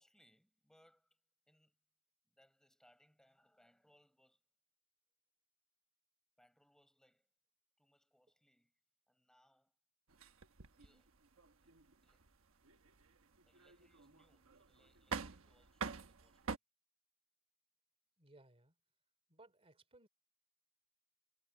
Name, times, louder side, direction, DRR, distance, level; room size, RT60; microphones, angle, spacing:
voice 1, 0.0-1.8 2.2-4.5 6.4-7.3 7.8-8.8 9.1-9.8 10.7-11.2 11.6-12.3 13.4-16.6, equal, 5° left, 7.4 m, -73 dB
sound 1, 10.1-16.6, right 5 dB, 65° right, 1.2 m, -47 dB
voice 2, 18.2-18.7 19.3-20.1, right 2 dB, 25° right, 3.1 m, -63 dB
head